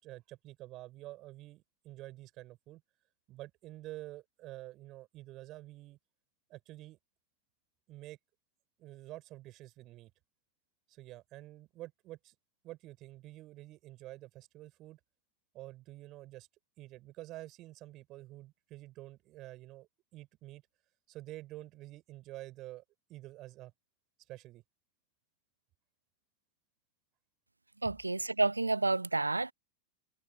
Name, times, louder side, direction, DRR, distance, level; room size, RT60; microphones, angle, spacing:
voice 1, 0.0-2.8 3.3-6.0 6.5-7.0 7.9-8.2 8.8-10.1 10.9-12.3 12.6-15.0 15.5-16.5 16.8-20.6 21.1-22.8 23.1-23.7 24.3-24.6 27.8-28.0, right 17 dB, 35° right, 7.7 m, -49 dB
voice 2, 27.8-29.5, right 2 dB, 80° right, 0.6 m, -30 dB
figure-of-eight pair, 90°, 0 cm